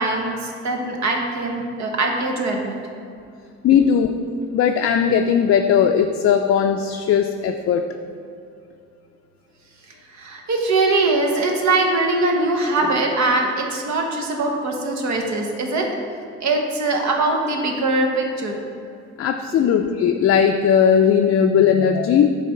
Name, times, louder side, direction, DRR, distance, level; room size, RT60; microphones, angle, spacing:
voice 1, 0.0-2.7 10.1-15.9 16.4-18.6 19.5-19.7, right 2 dB, 65° right, 2 dB, 1.1 m, -22 dB
voice 2, 3.6-4.1 4.5-7.9 19.2-22.3, left 8 dB, 50° left, 5 dB, 0.4 m, -17 dB
8.0 x 3.4 x 5.6 m, 2.5 s
cardioid pair, 90°, 30 cm